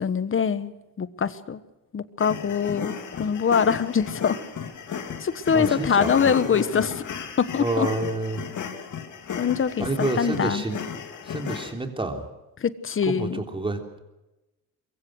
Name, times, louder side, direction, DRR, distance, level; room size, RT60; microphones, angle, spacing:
voice 1, 0.0-1.6 1.9-4.4 5.2-7.1 7.4-7.9 9.4-9.9 10.2-10.6 12.6-13.4, left 7 dB, 35° left, 14 dB, 1.3 m, -24 dB
sound 1, 2.2-11.7, left 7 dB, 55° left, 2.8 m, -34 dB
voice 2, 5.5-6.3 7.6-8.4 9.8-10.8 11.2-12.2 13.1-14.0, right 2 dB, 15° right, 4 dB, 3.4 m, -28 dB
24.0 x 22.5 x 6.5 m, 1.0 s
cardioid pair, 130°, 35 cm